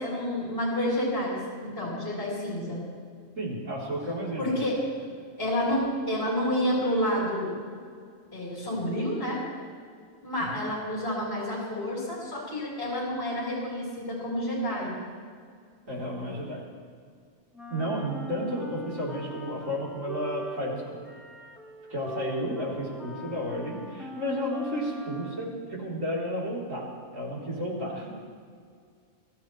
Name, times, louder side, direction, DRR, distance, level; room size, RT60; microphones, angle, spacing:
voice 1, 0.0-2.8 4.4-4.8 5.4-7.6 8.3-9.4 10.2-15.0, equal, 40° left, -5 dB, 4.4 m, -29 dB
voice 2, 3.4-4.5 10.5-10.6 15.9-16.7 17.7-21.1 21.9-26.9 27.1-28.1, equal, 75° right, -6 dB, 4.2 m, -32 dB
Wind instrument woodwind instrument, 17.5-25.7, equal, ahead, 1.2 m, -43 dB
22.0 x 13.5 x 3.2 m, 2.1 s
omnidirectional pair, 1.4 m